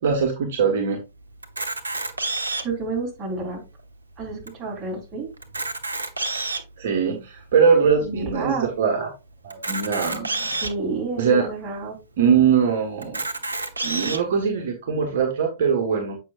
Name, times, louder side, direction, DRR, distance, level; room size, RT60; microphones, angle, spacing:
voice 1, 0.0-1.0 6.8-9.1 9.4-10.4 11.2-11.5 12.2-13.3 13.8-16.2, right 6 dB, 55° right, 1 dB, 1.4 m, -21 dB
Camera, 1.4-2.8 3.5-3.6 3.8-3.9 4.5-4.6 5.4-6.7 7.4-7.5 9.5-10.7 11.5-11.6 11.8-11.9 13.0-14.2, right 3 dB, 85° right, 0.8 m, -28 dB
voice 2, 2.6-3.6 4.2-5.3 8.0-8.7 10.6-12.0, right 3 dB, 25° right, -2 dB, 3.6 m, -29 dB
8.1 x 5.7 x 2.4 m, 0.27 s
figure-of-eight pair, 105°, 0 cm